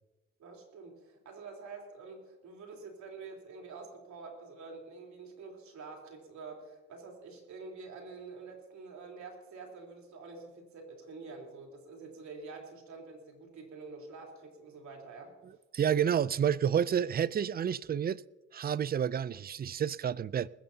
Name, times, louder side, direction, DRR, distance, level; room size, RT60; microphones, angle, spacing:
voice 1, 0.4-15.3, right 4 dB, 70° right, 3.5 m, -47 dB
voice 2, 15.7-18.2 18.5-20.5, right 8 dB, 30° right, 0.4 m, -29 dB
20.5 x 16.0 x 2.8 m
cardioid pair, 90°, 30 cm